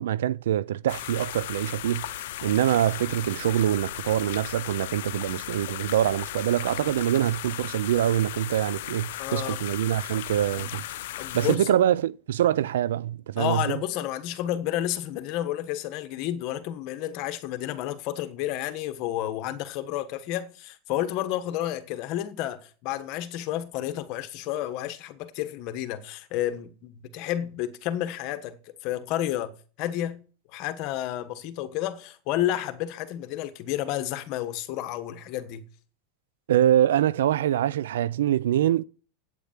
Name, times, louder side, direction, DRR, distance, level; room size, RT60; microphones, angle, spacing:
voice 1, 0.0-10.8 11.3-13.8 36.5-38.8, right 11 dB, 90° right, 0.4 m, -24 dB
sound 1, 0.9-11.6, left 14 dB, 75° left, 0.6 m, -36 dB
voice 2, 9.2-9.6 10.6-10.7 11.2-11.8 13.4-30.2 30.5-35.6, left 12 dB, 50° left, 1.4 m, -31 dB
8.7 x 8.4 x 7.3 m
supercardioid pair, 135°, 0 cm